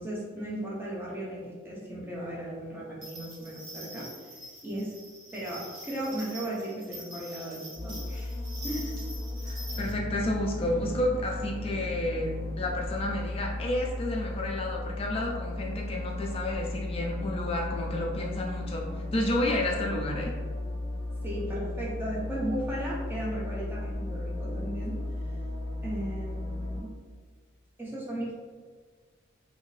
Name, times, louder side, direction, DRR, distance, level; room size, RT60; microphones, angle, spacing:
voice 1, 0.0-4.4 4.6-4.9 5.3-8.4 8.6-9.0 21.2-25.0 25.2-25.3 25.8-26.9 27.8-28.3, right 1 dB, 10° right, -6 dB, 0.6 m, -36 dB
sound 1, 3.0-9.9, right 1 dB, 80° right, 1.1 m, -45 dB
sound 2, 7.7-26.8, left 2 dB, 45° left, 0.7 m, -35 dB
voice 2, 9.4-12.3 12.6-20.3, left 1 dB, 30° left, 0 dB, 0.3 m, -31 dB
sound 3, 9.7-15.7, right 1 dB, 45° right, 0.8 m, -45 dB
2.7 x 2.6 x 3.0 m, 1.5 s
head